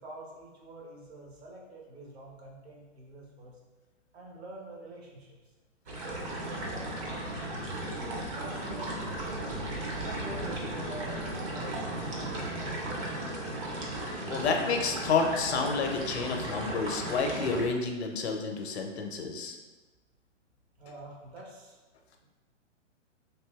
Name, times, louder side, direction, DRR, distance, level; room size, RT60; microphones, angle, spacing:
voice 1, 0.0-3.6 4.1-5.4 6.1-7.3 7.7-9.4 9.9-12.4 12.8-13.5 20.8-21.8, right 1 dB, 55° right, -2 dB, 0.9 m, -47 dB
sound 1, 5.9-17.7, right 1 dB, 30° right, 0.5 m, -36 dB
voice 2, 14.3-19.6, left 4 dB, 60° left, 3 dB, 0.5 m, -29 dB
3.3 x 2.7 x 2.2 m, 1.2 s
figure-of-eight pair, 120°, 37 cm